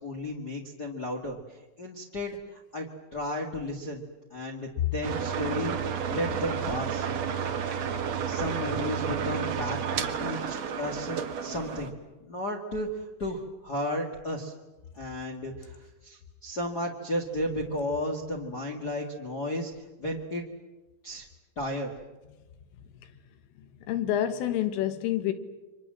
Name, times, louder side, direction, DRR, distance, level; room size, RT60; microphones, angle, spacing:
voice 1, 0.0-2.9 3.1-4.0 4.3-7.1 8.3-11.9 12.2-14.5 14.9-19.7 20.0-20.4 21.0-21.3 21.5-21.9, left 1 dB, 70° left, 0.9 m, -34 dB
sound 1, 5.0-11.9, right 7 dB, 60° right, 1.7 m, -31 dB
voice 2, 23.6-25.3, left 12 dB, 85° left, 4.1 m, -28 dB
29.5 x 24.5 x 7.6 m
omnidirectional pair, 5.6 m